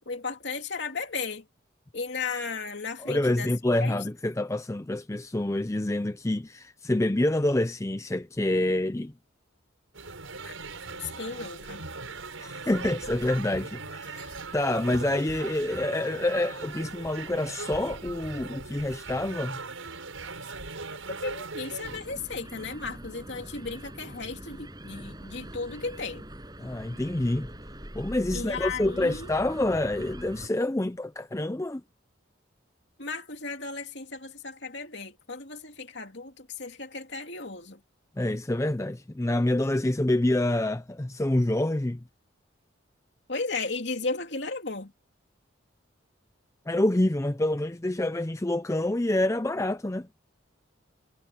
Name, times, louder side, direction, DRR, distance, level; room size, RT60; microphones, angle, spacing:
voice 1, 0.0-1.5 1.9-3.5 3.8-4.0 10.4-10.5 10.9-11.8 21.2-26.3 28.3-29.3 33.0-37.8 43.3-44.9, left 4 dB, 60° left, 3.0 m, -35 dB
voice 2, 3.0-9.1 12.4-19.6 26.6-27.5 28.0-31.8 38.2-42.0 46.7-50.1, left 1 dB, 15° left, 0.5 m, -27 dB
sound 1, 9.9-22.0, right 3 dB, 85° right, 6.2 m, -39 dB
sound 2, 21.8-30.5, right 1 dB, 20° right, 6.6 m, -43 dB
head